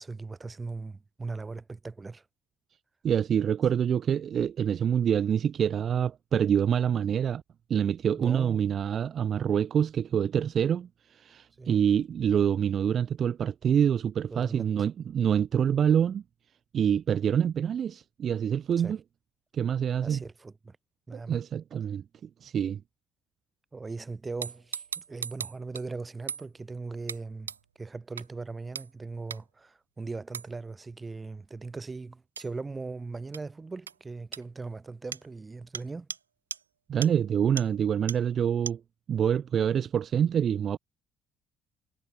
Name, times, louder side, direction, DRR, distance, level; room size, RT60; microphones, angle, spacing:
voice 1, 0.0-2.2 8.2-8.6 11.6-11.8 14.3-14.9 18.8-18.9 20.0-20.8 21.1-21.4 23.7-27.5 27.8-36.1, right 3 dB, 25° right, 6.7 m, -39 dB
voice 2, 3.0-7.4 7.7-16.2 16.7-19.0 19.5-20.2 21.1-22.8 36.9-38.8 39.1-40.8, right 8 dB, 45° right, 2.1 m, -26 dB
sound 1, 24.4-25.9 26.3-26.5 27.1-27.2 27.5-27.6 28.2-28.3 28.8-28.9 29.3-29.4 30.3-30.5 32.4-32.5 33.3-33.4 33.9-34.0 34.3-34.4 35.1-35.3 35.7-35.8 36.1-36.2 36.5-36.6 37.0-37.1 37.6-37.7 38.1-38.2 38.7-38.8, right 7 dB, 85° right, 2.0 m, -37 dB
figure-of-eight pair, 50°, 0 cm